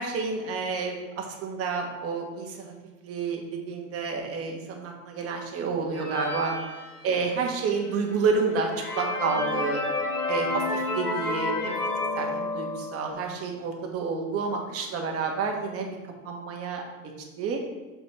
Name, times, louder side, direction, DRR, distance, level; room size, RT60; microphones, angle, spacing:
voice 1, 0.0-2.7 3.0-6.5 7.0-9.8 10.3-11.8 12.1-15.9 16.2-16.8 17.4-17.6, right 4 dB, 30° right, 1 dB, 1.4 m, -29 dB
sound 1, 5.9-7.6 8.1-8.2 8.6-13.1, left 2 dB, 85° left, 1.4 m, -30 dB
7.0 x 4.2 x 4.4 m, 1.2 s
figure-of-eight pair, 85°, 44 cm